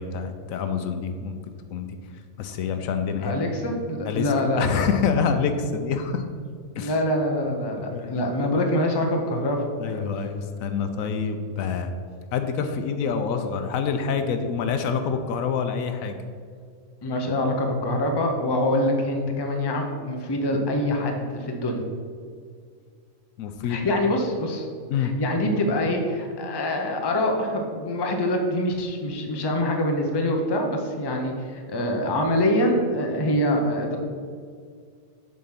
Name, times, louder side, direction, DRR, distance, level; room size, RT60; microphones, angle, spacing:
voice 1, 0.0-1.9 2.4-3.4 4.1-6.3 6.8-7.0 7.9-8.2 9.8-11.9 12.3-16.2 23.4-23.9 24.9-25.2, left 6 dB, 80° left, 7 dB, 1.0 m, -27 dB
voice 2, 3.2-4.9 6.8-10.0 17.0-21.8 23.7-24.7 25.0-34.0, left 1 dB, 25° left, 2 dB, 0.6 m, -25 dB
7.3 x 3.8 x 5.8 m, 2.1 s
omnidirectional pair, 1.5 m